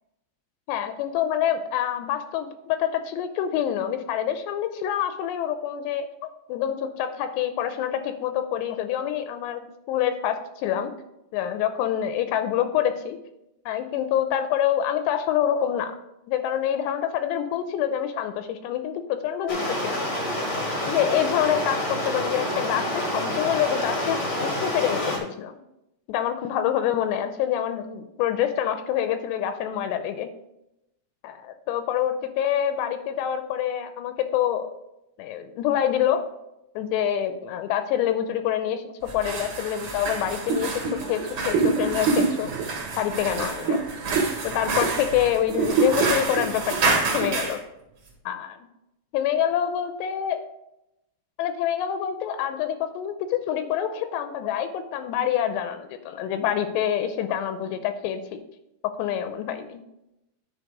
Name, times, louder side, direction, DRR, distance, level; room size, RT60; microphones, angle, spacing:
voice 1, 0.7-10.9 11.3-13.2 13.7-16.0 16.3-20.0 20.9-25.5 26.1-30.3 31.2-34.7 35.2-36.2 36.8-40.8 41.1-42.5 43.0-43.8 44.4-47.6 48.3-48.6 49.1-50.4 51.4-58.4 59.0-59.8, left 10 dB, 85° left, 9 dB, 2.7 m, -26 dB
Stream, 19.5-25.2, left 1 dB, 60° left, 1.0 m, -28 dB
sound 1, 39.0-47.6, right 4 dB, 45° right, 2.0 m, -29 dB
sound 2, 40.5-45.1 45.4-47.3, right 4 dB, 70° right, 2.1 m, -26 dB
10.0 x 4.1 x 4.9 m, 0.87 s
omnidirectional pair, 5.0 m